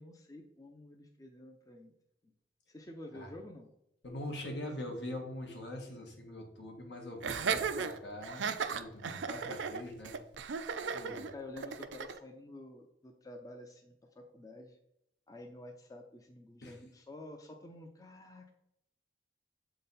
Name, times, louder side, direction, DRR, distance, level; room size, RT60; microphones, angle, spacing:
voice 1, 0.0-1.9 2.7-3.7 11.0-14.8 15.3-18.5, left 1 dB, 20° left, 4 dB, 0.5 m, -50 dB
voice 2, 4.0-10.2 10.9-11.3 16.6-16.8, left 1 dB, 75° left, 2 dB, 1.5 m, -43 dB
Laughter, 7.2-12.2, right 6 dB, 90° right, 0.5 m, -36 dB
7.5 x 3.9 x 4.1 m, 0.80 s
head